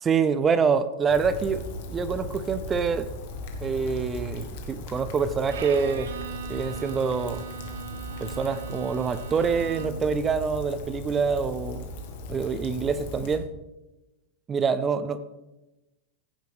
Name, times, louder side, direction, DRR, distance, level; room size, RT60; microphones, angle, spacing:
voice 1, 0.0-3.1 3.6-6.1 6.5-7.4 8.2-11.9 12.3-13.5 14.5-15.2, right 5 dB, 15° right, 13 dB, 0.5 m, -26 dB
Rain, 1.1-13.4, left 1 dB, 50° left, 1.8 m, -38 dB
Bowed string instrument, 5.5-10.2, right 6 dB, 85° right, 1.0 m, -39 dB
15.0 x 7.6 x 3.6 m, 1.0 s
supercardioid pair, 170°, 0 cm